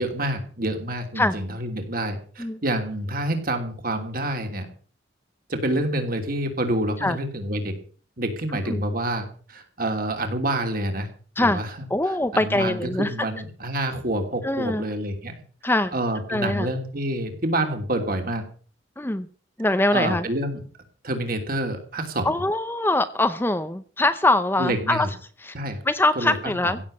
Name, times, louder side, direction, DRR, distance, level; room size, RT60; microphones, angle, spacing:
voice 1, 0.0-4.7 5.5-7.7 8.2-11.1 11.4-11.9 12.3-15.4 15.9-18.5 19.9-20.6 21.0-22.3 24.6-25.1 25.5-25.8 26.2-26.4 26.6-26.7, right 1 dB, 45° right, 5 dB, 3.0 m, -27 dB
voice 2, 11.9-13.1 14.4-14.8 15.6-15.9 16.3-16.7 19.0-19.3 19.6-20.3 22.2-25.1 25.4-25.6 25.8-26.8, left 2 dB, 10° left, 11 dB, 0.6 m, -23 dB
16.0 x 7.3 x 8.5 m, 0.43 s
head